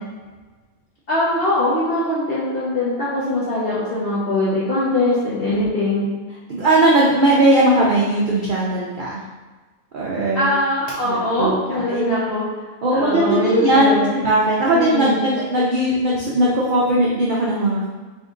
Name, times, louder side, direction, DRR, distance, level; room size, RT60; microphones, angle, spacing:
voice 1, 1.1-6.1 10.4-12.5 12.9-14.1 14.7-15.2, left 1 dB, 50° left, -8 dB, 0.8 m, -21 dB
voice 2, 6.5-9.2 9.9-10.5 11.0-12.3 12.8-17.9, right 1 dB, 75° right, -5 dB, 0.4 m, -18 dB
3.5 x 2.6 x 3.6 m, 1.3 s
omnidirectional pair, 1.5 m